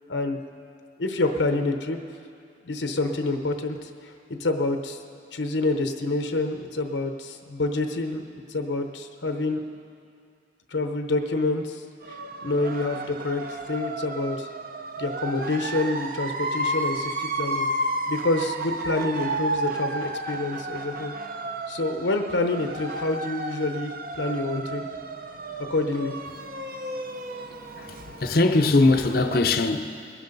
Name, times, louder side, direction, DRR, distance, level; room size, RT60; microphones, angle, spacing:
voice 1, 1.0-2.0 2.7-4.1 4.4-5.0 5.3-9.6 10.7-14.5 15.0-17.7 18.1-21.1 21.7-24.8 25.7-26.1, left 2 dB, 90° left, 0.9 m, -27 dB
sound 1, 12.0-29.4, right 2 dB, 50° right, 0.7 m, -32 dB
voice 2, 27.8-30.2, left 2 dB, 55° left, 0.6 m, -22 dB
21.5 x 11.0 x 4.0 m
head